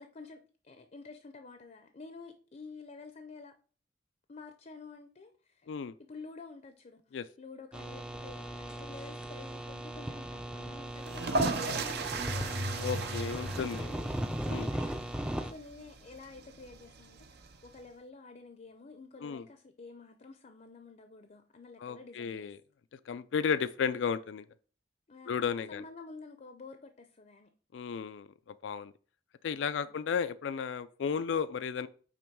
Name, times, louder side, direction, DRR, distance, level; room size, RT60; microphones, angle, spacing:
voice 1, 0.0-3.5 4.3-14.2 14.7-22.5 25.1-25.4 25.7-27.5 29.8-30.0, left 4 dB, 40° left, 0.6 m, -50 dB
sound 1, 7.7-15.5, right 1 dB, 5° right, 0.5 m, -38 dB
sound 2, 11.0-17.8, right 3 dB, 65° right, 0.7 m, -37 dB
sound 3, 12.1-15.0, left 1 dB, 45° right, 1.6 m, -40 dB
voice 2, 12.8-14.0 14.5-14.7 19.2-19.4 21.8-22.6 23.1-24.5 25.3-25.8 27.7-28.3 28.6-28.9 29.4-31.9, left 6 dB, 90° left, 0.4 m, -33 dB
8.8 x 3.0 x 4.6 m
head